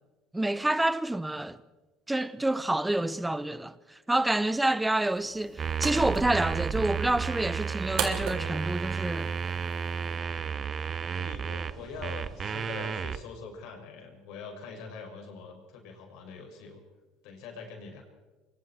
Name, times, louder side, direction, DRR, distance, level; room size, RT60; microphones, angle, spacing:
voice 1, 0.3-1.6 2.1-9.3, right 1 dB, 10° right, 0.9 m, -28 dB
sound 1, 5.1-10.2, right 8 dB, 60° right, 3.8 m, -39 dB
sound 2, 5.6-13.2, right 6 dB, 35° right, 1.0 m, -32 dB
voice 2, 11.1-16.8 17.2-18.0, left 5 dB, 70° left, 6.3 m, -43 dB
26.5 x 24.0 x 4.5 m
supercardioid pair, 110°, 0 cm